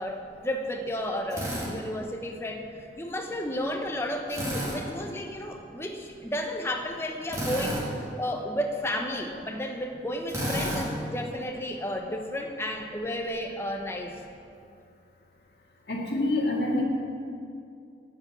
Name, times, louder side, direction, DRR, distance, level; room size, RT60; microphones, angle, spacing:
voice 1, 0.0-2.6 3.0-7.8 8.2-14.1, left 1 dB, 15° left, 2 dB, 0.9 m, -32 dB
Drill, 1.3-1.7 4.3-4.8 7.3-7.9 10.3-10.9, equal, 15° right, 2.0 m, -30 dB
voice 2, 15.9-16.8, left 2 dB, 65° left, -2 dB, 1.8 m, -26 dB
8.7 x 8.6 x 8.5 m, 2.5 s
head